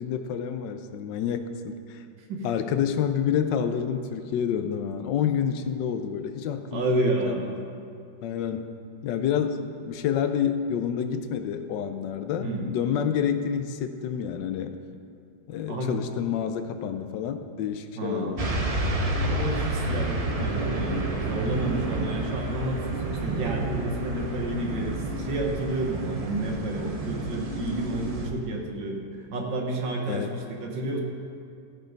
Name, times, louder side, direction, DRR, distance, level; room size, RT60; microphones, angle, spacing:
voice 1, 0.0-2.0 2.4-7.4 8.2-8.7 9.0-14.8 15.5-18.6 30.1-30.3, left 8 dB, 80° left, 8 dB, 1.3 m, -28 dB
voice 2, 6.7-7.5 12.4-12.8 15.7-16.0 17.9-18.6 19.2-29.0 29.3-31.0, right 2 dB, 90° right, 1 dB, 2.0 m, -31 dB
sound 1, 18.4-28.3, right 2 dB, 55° right, 0.4 m, -30 dB
16.0 x 5.3 x 5.2 m, 2.4 s
omnidirectional pair, 2.0 m